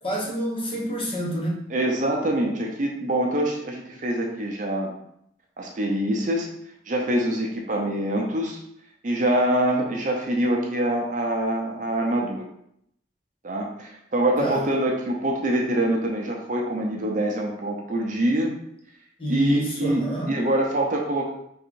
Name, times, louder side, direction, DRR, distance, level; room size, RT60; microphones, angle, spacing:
voice 1, 0.0-1.6 14.4-14.6 19.2-20.4, equal, 30° left, -3 dB, 1.0 m, -28 dB
voice 2, 1.7-4.9 5.6-6.5 6.9-8.6 9.0-12.4 13.4-18.5 19.3-21.3, right 1 dB, 45° right, 0 dB, 0.7 m, -25 dB
3.8 x 2.6 x 4.6 m, 0.74 s
head